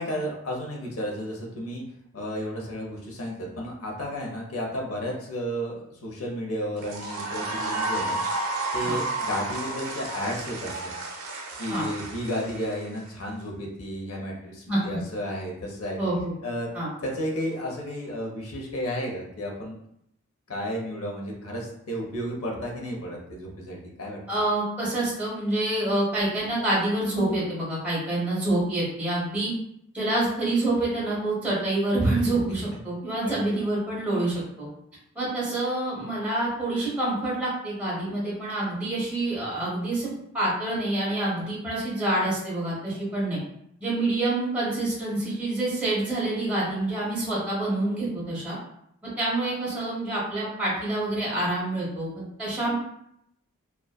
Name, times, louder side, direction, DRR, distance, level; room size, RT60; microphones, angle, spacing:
voice 1, 0.0-1.8 2.1-8.2 8.7-10.8 11.6-16.0 16.4-16.7 17.0-19.8 20.5-24.2 33.2-33.6, equal, 90° left, -1 dB, 0.7 m, -32 dB
sound 1, 6.8-13.1, right 2 dB, 85° right, 0.5 m, -32 dB
voice 2, 14.7-15.0 16.0-16.3 16.7-16.9 24.3-29.5 29.9-34.7 35.1-43.4 43.8-48.6 49.0-52.8, right 2 dB, 5° right, -6 dB, 0.7 m, -27 dB
2.5 x 2.2 x 2.2 m, 0.75 s
head